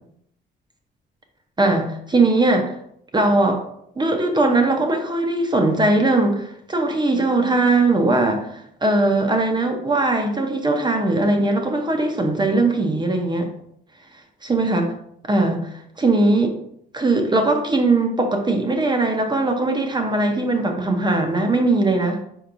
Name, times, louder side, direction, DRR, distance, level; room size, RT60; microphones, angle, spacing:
voice 1, 1.6-2.7 3.1-3.6 4.0-13.5 14.5-14.8 15.3-16.5 16.9-22.2, right 2 dB, 20° right, 4 dB, 0.8 m, -20 dB
4.6 x 4.3 x 2.6 m, 0.72 s
cardioid pair, 90°, 20 cm